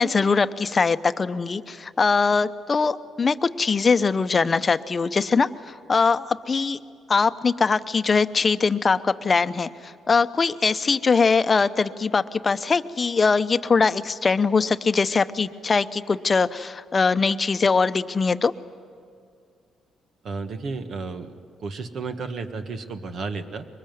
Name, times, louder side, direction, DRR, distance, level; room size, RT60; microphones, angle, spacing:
voice 1, 0.0-6.8 7.1-18.5, left 4 dB, 35° left, 12 dB, 0.8 m, -22 dB
voice 2, 20.2-21.3 21.6-23.7, right 4 dB, 60° right, 8 dB, 1.6 m, -32 dB
23.5 x 20.5 x 9.3 m, 2.3 s
cardioid pair, 90°, 0 cm